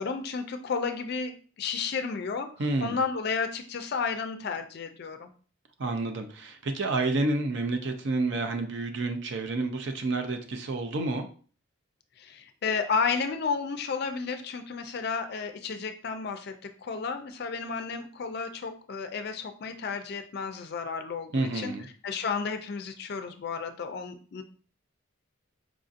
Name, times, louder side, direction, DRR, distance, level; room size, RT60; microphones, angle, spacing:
voice 1, 0.0-2.5 2.8-5.3 12.2-16.5 16.8-21.7 22.0-24.4, left 5 dB, 50° left, 8 dB, 0.4 m, -32 dB
voice 2, 2.6-3.0 5.8-11.3 21.3-21.9, right 2 dB, 55° right, 6 dB, 0.5 m, -29 dB
4.8 x 2.6 x 2.5 m, 0.42 s
head